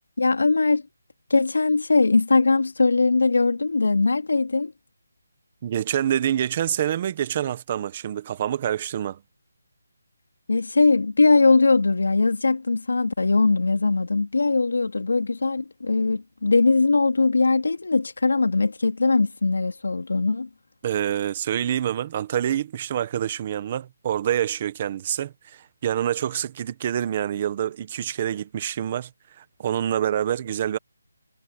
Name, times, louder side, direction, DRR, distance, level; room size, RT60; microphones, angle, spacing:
voice 1, 0.2-0.8 1.3-4.7 10.5-20.5, left 3 dB, 80° left, 3.4 m, -20 dB
voice 2, 5.6-9.2 20.8-29.1 29.4-30.8, right 10 dB, 20° right, 1.2 m, -26 dB
hypercardioid pair, 175°, 0 cm